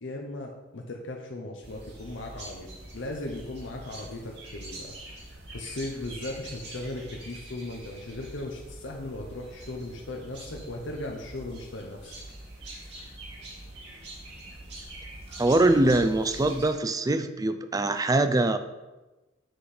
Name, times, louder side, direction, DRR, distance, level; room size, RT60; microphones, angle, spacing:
voice 1, 0.0-2.7 2.9-4.9 5.5-12.1, left 2 dB, 70° left, 0 dB, 0.8 m, -37 dB
sound 1, 1.6-16.7, right 1 dB, 65° right, 2.3 m, -44 dB
voice 2, 15.4-18.6, right 2 dB, 20° right, 10 dB, 0.4 m, -23 dB
7.8 x 5.0 x 4.3 m, 1.1 s
head